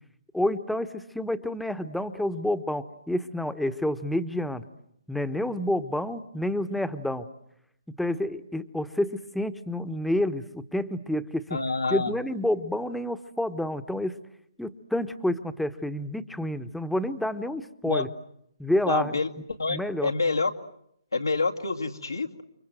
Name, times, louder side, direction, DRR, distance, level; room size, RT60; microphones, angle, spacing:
voice 1, 0.3-4.6 5.1-7.3 8.0-11.4 11.9-14.2 14.6-18.1 18.6-19.1 19.7-20.1, left 1 dB, ahead, 11 dB, 1.1 m, -29 dB
voice 2, 11.5-12.1 17.8-18.0 18.9-20.5 21.1-22.4, left 3 dB, 85° left, 3 dB, 2.4 m, -27 dB
29.5 x 25.0 x 7.9 m, 0.73 s
figure-of-eight pair, 135°, 2 cm